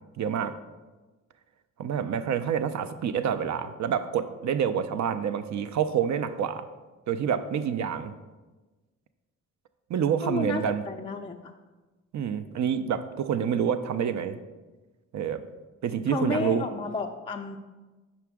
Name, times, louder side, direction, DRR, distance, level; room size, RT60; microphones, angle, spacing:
voice 1, 0.2-0.5 1.8-6.7 7.1-8.1 9.9-10.8 12.1-14.4 15.1-15.4 15.8-16.7, right 8 dB, 45° right, 11 dB, 0.5 m, -27 dB
voice 2, 10.2-11.4 16.1-17.6, left 3 dB, 15° left, 3 dB, 0.4 m, -31 dB
5.8 x 4.9 x 3.5 m, 1.2 s
supercardioid pair, 50°, 38 cm